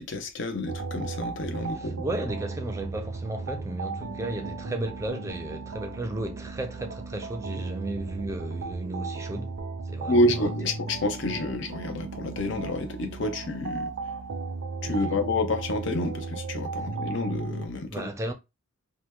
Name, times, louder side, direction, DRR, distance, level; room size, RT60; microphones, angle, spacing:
voice 1, 0.0-2.1 10.1-13.9 14.8-18.1, left 1 dB, 65° left, 0.6 m, -28 dB
sound 1, 0.7-17.7, right 4 dB, 85° right, 0.5 m, -35 dB
voice 2, 1.8-9.6 9.9-10.5 14.9-15.2 17.9-18.3, right 1 dB, 15° right, 0.4 m, -34 dB
2.9 x 2.1 x 3.4 m
head